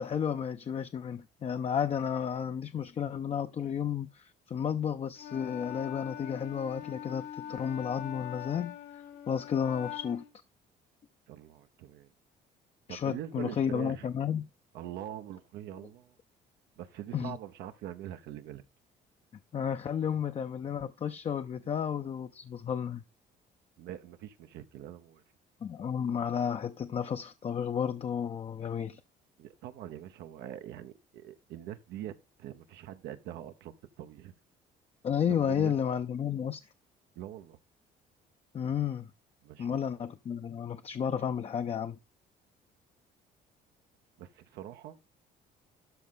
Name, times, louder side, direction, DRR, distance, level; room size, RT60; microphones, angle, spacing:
voice 1, 0.0-10.2 12.9-14.5 17.1-17.4 19.5-23.0 25.6-29.0 35.0-36.6 38.5-39.1 39.6-42.0, left 8 dB, 35° left, 0.6 m, -32 dB
Wind instrument woodwind instrument, 5.2-10.3, left 10 dB, 75° left, 1.9 m, -43 dB
voice 2, 11.3-12.1 12.9-14.1 14.7-16.2 16.8-18.6 23.8-25.2 29.4-34.3 35.3-35.8 37.2-37.6 39.4-39.9 44.2-45.0, right 12 dB, 85° right, 0.9 m, -43 dB
12.5 x 4.3 x 3.8 m
cardioid pair, 110°, 17 cm